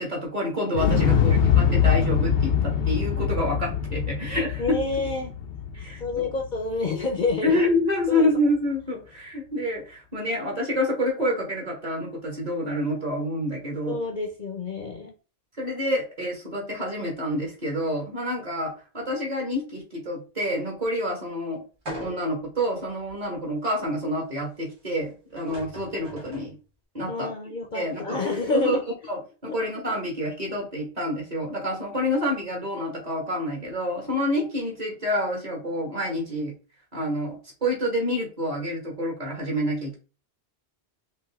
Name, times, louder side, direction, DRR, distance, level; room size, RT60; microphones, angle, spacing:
voice 1, 0.0-4.8 5.7-6.3 7.4-14.0 15.6-21.6 22.0-26.5 26.9-28.2 28.5-28.8 29.1-36.5 36.9-40.0, left 1 dB, 40° right, 1.7 m, -28 dB
Explosion, 0.7-6.8 7.1-7.2, left 7 dB, 85° left, 1.0 m, -23 dB
voice 2, 1.0-1.4 4.6-5.3 6.0-7.5 8.1-8.3 13.9-15.1 27.1-28.8, left 3 dB, 50° left, 0.8 m, -28 dB
sound 1, 21.9-22.5 23.1-23.2 25.0-25.1 25.4-26.5, equal, 80° right, 2.3 m, -39 dB
5.2 x 2.6 x 3.5 m
omnidirectional pair, 1.1 m